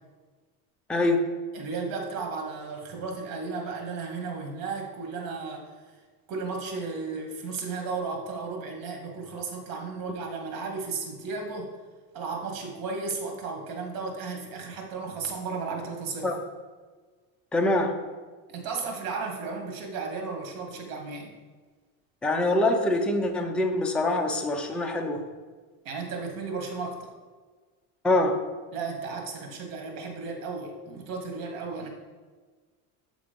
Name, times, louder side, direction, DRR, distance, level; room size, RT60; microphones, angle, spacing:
voice 1, 0.9-1.2 16.2-16.4 17.5-18.0 22.2-25.2 28.0-28.4, left 2 dB, 5° left, 2 dB, 0.5 m, -24 dB
voice 2, 1.5-5.7 6.3-11.7 12.1-16.3 18.5-21.3 25.8-27.1 28.7-31.9, right 4 dB, 65° right, 2 dB, 1.9 m, -34 dB
8.3 x 3.8 x 5.2 m, 1.4 s
cardioid pair, 140°, 38 cm